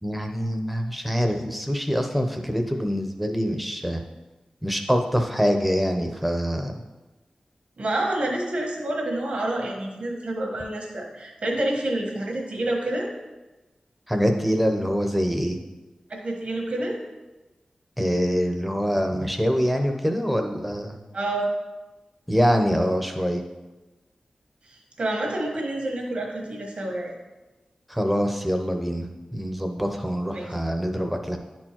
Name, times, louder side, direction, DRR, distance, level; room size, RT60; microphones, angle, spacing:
voice 1, 0.0-4.0 4.6-6.7 14.1-15.6 18.0-21.0 22.3-23.4 27.9-31.4, equal, 5° right, 4 dB, 0.7 m, -24 dB
voice 2, 7.8-13.1 16.1-17.0 21.1-21.5 24.7-27.2 30.3-30.5, right 1 dB, 75° right, 0 dB, 1.4 m, -28 dB
10.5 x 4.5 x 2.9 m, 1.1 s
wide cardioid pair, 95°, 2 cm